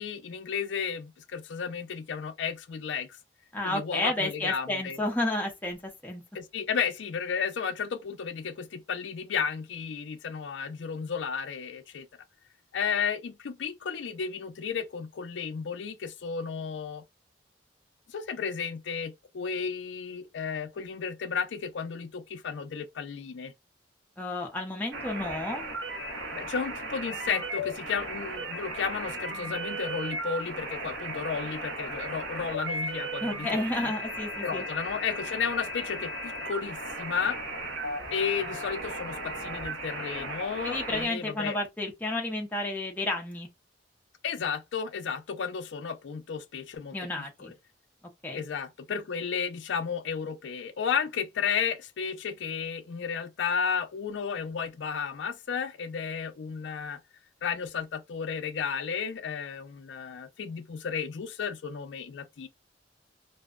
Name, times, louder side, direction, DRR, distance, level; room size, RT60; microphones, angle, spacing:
voice 1, 0.0-3.1 3.6-5.0 6.3-12.1 12.7-17.0 18.1-23.5 26.3-33.9 34.4-37.4 38.1-41.6 44.2-47.0 47.4-47.5 48.3-57.0 57.4-62.5, left 6 dB, 80° left, 0.4 m, -33 dB
voice 2, 3.5-6.2 24.2-25.6 33.2-34.6 40.6-43.5 46.9-47.5 48.2-48.4, left 2 dB, 10° left, 0.6 m, -31 dB
sound 1, 24.9-41.1, right 1 dB, 85° right, 0.9 m, -36 dB
2.6 x 2.1 x 2.3 m
head